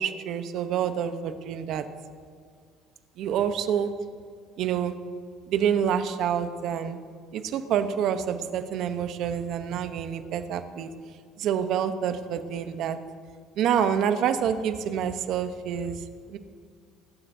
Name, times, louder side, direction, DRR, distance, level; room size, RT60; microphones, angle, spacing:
voice 1, 0.0-1.9 3.2-3.9 4.6-4.9 5.5-7.0 7.3-10.9 11.4-13.0 13.6-16.4, right 8 dB, 60° right, 9 dB, 0.9 m, -27 dB
21.5 x 12.0 x 2.7 m, 2.1 s
cardioid pair, 125°, 0 cm